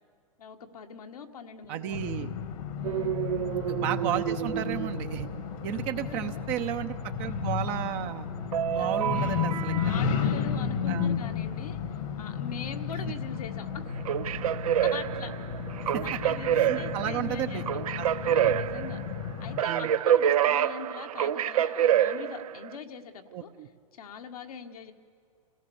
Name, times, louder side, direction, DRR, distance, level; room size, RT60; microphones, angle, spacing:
voice 1, 0.4-2.0 2.8-3.2 5.7-6.4 8.8-9.2 9.8-11.8 12.2-13.9 14.8-15.3 16.0-17.8 18.2-19.0 19.4-23.5 23.9-24.9, left 7 dB, 85° left, 5 dB, 1.7 m, -42 dB
voice 2, 1.7-2.3 3.5-5.3 5.6-8.3 8.7-9.8 10.9-11.2 15.8-16.1 16.5-17.6 18.0-18.1 19.6-19.9 23.3-23.7, right 11 dB, 45° right, 7 dB, 0.9 m, -33 dB
sound 1, 1.9-19.6, left 7 dB, 65° left, 1.6 m, -33 dB
sound 2, 2.8-5.7 8.5-10.3 13.9-22.7, right 10 dB, 80° right, 0.7 m, -28 dB
27.5 x 17.0 x 7.1 m, 2.4 s
hypercardioid pair, 130°, 18 cm